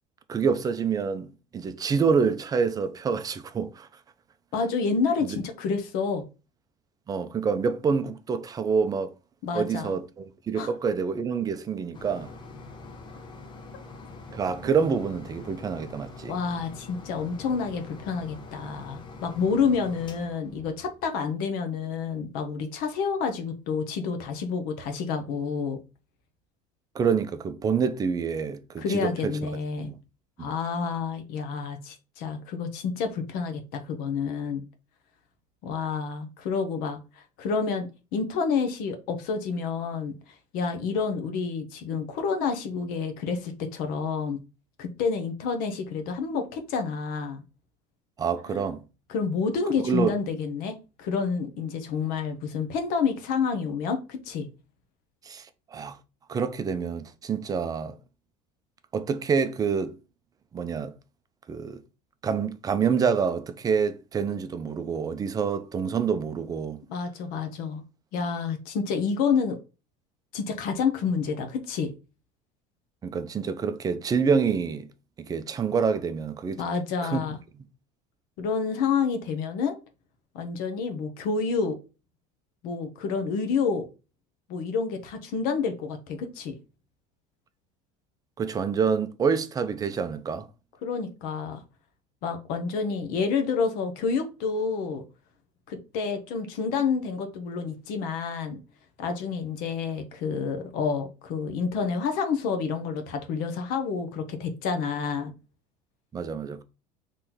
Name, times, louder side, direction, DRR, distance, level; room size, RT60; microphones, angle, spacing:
voice 1, 0.3-3.9 7.1-9.1 9.5-12.3 14.3-16.4 26.9-29.4 29.8-30.0 30.4-30.5 48.2-48.8 49.8-50.1 55.2-56.0 56.3-57.9 58.9-60.0 60.5-60.9 61.5-61.8 62.2-66.8 73.0-74.9 75.2-76.6 77.0-77.2 88.4-90.5 106.1-106.6, right 6 dB, 25° right, 0.5 m, -27 dB
voice 2, 4.5-6.2 9.4-9.9 10.5-10.7 16.3-25.8 28.8-29.9 30.4-34.6 35.6-37.0 37.4-40.1 40.5-44.4 44.8-47.4 48.5-48.6 49.1-54.5 66.9-67.8 68.1-69.6 70.3-71.9 76.6-77.4 78.4-79.8 80.3-81.8 82.6-83.9 84.5-86.5 90.8-91.6 92.2-95.0 95.7-98.6 99.0-105.3, left 5 dB, 60° left, 1.0 m, -29 dB
sound 1, 11.9-21.4 22.1-22.2 22.6-22.7, left 3 dB, 30° left, 0.9 m, -45 dB
4.3 x 3.2 x 3.9 m
supercardioid pair, 130°, 16 cm